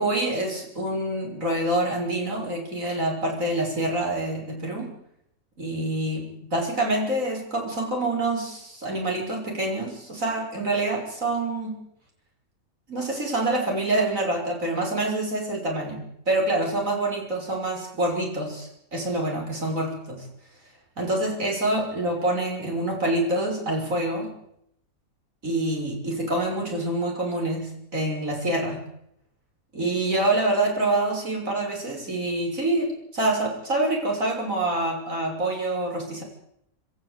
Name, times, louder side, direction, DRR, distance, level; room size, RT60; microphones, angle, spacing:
voice 1, 0.0-4.9 5.6-11.8 12.9-20.3 21.0-24.4 25.4-28.8 29.7-36.2, right 2 dB, 65° right, 0 dB, 6.5 m, -26 dB
27.0 x 14.5 x 8.2 m, 0.75 s
omnidirectional pair, 1.5 m